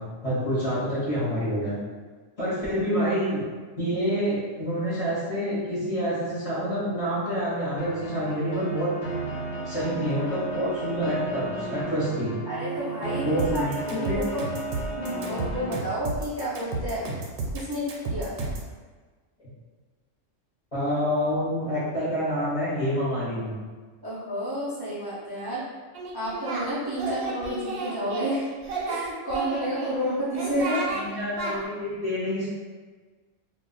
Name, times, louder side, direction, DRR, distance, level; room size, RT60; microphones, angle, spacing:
voice 1, 0.0-1.8 2.4-3.4 3.8-8.9 9.7-12.3 13.2-14.2 19.4-19.5 20.7-23.6 30.6-32.5, equal, 35° left, -9 dB, 0.8 m, -27 dB
sound 1, 7.8-15.8, right 2 dB, 70° left, 0.9 m, -33 dB
voice 2, 12.5-14.4 15.0-17.0 17.5-18.5 24.0-25.6 26.1-28.5 28.9-30.8, equal, 35° right, -10 dB, 0.4 m, -30 dB
sound 2, 13.4-18.7, right 2 dB, 80° right, 0.9 m, -32 dB
Singing, 25.9-26.7 27.0-28.3 28.6-29.9 30.3-31.0 31.4-31.5, right 3 dB, 60° right, 0.7 m, -32 dB
2.3 x 2.2 x 3.8 m, 1.4 s
omnidirectional pair, 1.3 m